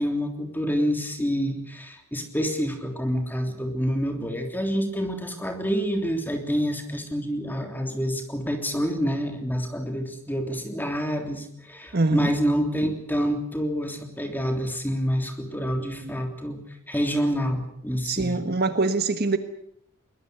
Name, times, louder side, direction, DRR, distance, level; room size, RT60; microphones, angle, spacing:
voice 1, 0.0-16.6 16.9-18.3, equal, 10° left, 5 dB, 3.3 m, -27 dB
voice 2, 11.9-12.3 16.0-16.1 18.0-19.4, right 3 dB, 45° right, 10 dB, 1.4 m, -24 dB
22.0 x 21.0 x 8.1 m, 0.69 s
head